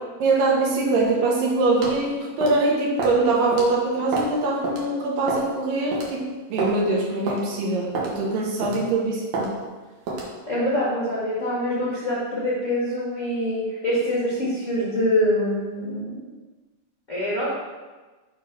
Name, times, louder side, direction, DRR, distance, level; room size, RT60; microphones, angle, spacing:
voice 1, 0.2-6.2 6.5-9.5, right 3 dB, 85° right, -3 dB, 3.0 m, -23 dB
sound 1, 1.8-2.0 2.4-2.6 3.0-3.2 3.5-3.7 4.1-4.3 4.6-4.8 5.3-5.5 5.9-6.1 6.6-6.7 7.3-7.4 7.9-8.1 8.6-8.9 9.3-9.5 10.1-10.3, right 4 dB, 65° right, 2.1 m, -28 dB
voice 2, 10.5-16.2 17.1-17.5, left 1 dB, 85° left, -8 dB, 0.6 m, -25 dB
6.4 x 3.4 x 6.0 m, 1.2 s
omnidirectional pair, 3.9 m